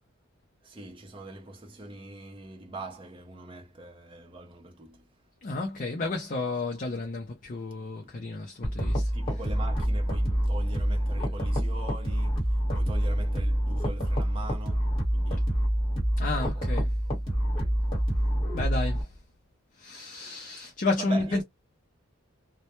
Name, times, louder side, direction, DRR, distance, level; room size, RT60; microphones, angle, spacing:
voice 1, 0.6-5.1 9.1-15.6 16.5-17.9 21.0-21.4, right 2 dB, 25° right, 0.5 m, -42 dB
voice 2, 5.4-9.1 16.2-16.9 18.5-19.1 19.8-21.4, left 3 dB, 35° left, 0.4 m, -31 dB
sound 1, 8.6-19.0, equal, 20° left, 1.2 m, -27 dB
2.1 x 2.1 x 2.9 m
head